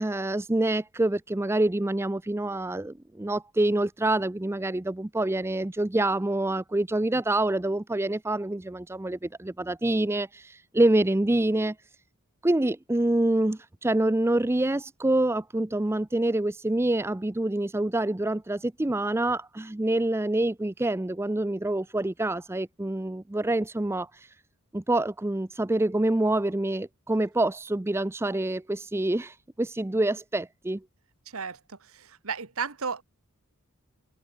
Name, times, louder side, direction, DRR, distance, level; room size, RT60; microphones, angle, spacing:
voice 1, 0.0-11.7 12.4-24.1 24.7-30.8, right 1 dB, 10° right, 0.4 m, -26 dB
voice 2, 31.3-33.0, right 5 dB, 70° right, 1.4 m, -34 dB
open air
head